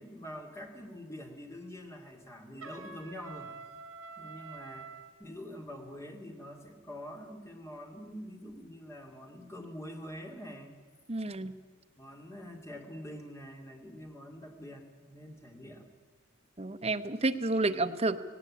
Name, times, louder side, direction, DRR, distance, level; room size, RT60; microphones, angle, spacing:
voice 1, 0.0-3.5 4.2-4.9 5.2-10.7 12.0-15.9, equal, 15° left, 2 dB, 2.3 m, -45 dB
Trumpet, 2.6-5.1, right 4 dB, 85° right, 2.6 m, -47 dB
voice 2, 11.1-11.6 16.6-18.2, right 2 dB, 30° right, 7 dB, 0.9 m, -30 dB
18.0 x 17.5 x 8.6 m, 1.4 s
head